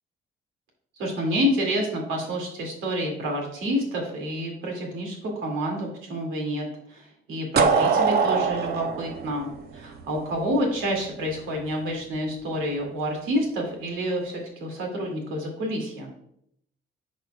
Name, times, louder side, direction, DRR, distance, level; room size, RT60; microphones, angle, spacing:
voice 1, 1.0-16.1, equal, 85° right, 0 dB, 2.3 m, -28 dB
sound 1, 7.6-10.4, right 5 dB, 55° right, 0.7 m, -22 dB
10.5 x 4.4 x 2.3 m, 0.71 s
cardioid pair, 90°, 20 cm